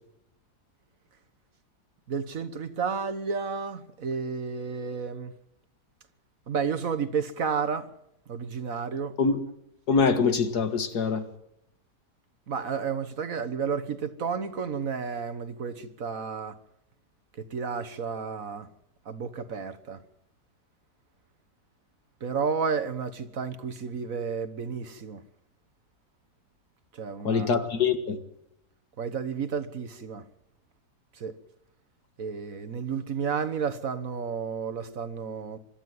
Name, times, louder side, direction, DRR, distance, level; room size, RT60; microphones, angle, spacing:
voice 1, 2.1-5.3 6.5-7.9 8.3-9.2 12.5-16.6 17.4-18.7 19.0-20.0 22.2-25.2 26.9-27.7 29.0-30.2 31.1-31.3 32.2-35.6, right 6 dB, 55° right, 1.6 m, -31 dB
voice 2, 9.9-11.2 27.2-28.2, left 5 dB, 65° left, 2.2 m, -24 dB
25.0 x 12.0 x 9.4 m
omnidirectional pair, 1.8 m